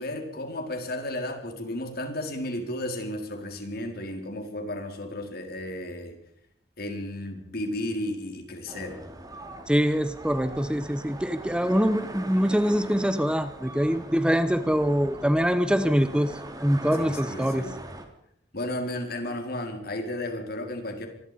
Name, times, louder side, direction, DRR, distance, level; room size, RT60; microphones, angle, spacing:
voice 1, 0.0-6.2 6.8-9.0 17.0-17.7 18.5-21.1, left 1 dB, 55° left, 4 dB, 4.7 m, -33 dB
sound 1, 8.7-18.1, right 1 dB, 20° right, 3.2 m, -41 dB
voice 2, 9.7-17.7, equal, 5° right, 11 dB, 1.0 m, -24 dB
25.5 x 21.5 x 5.3 m, 0.67 s
head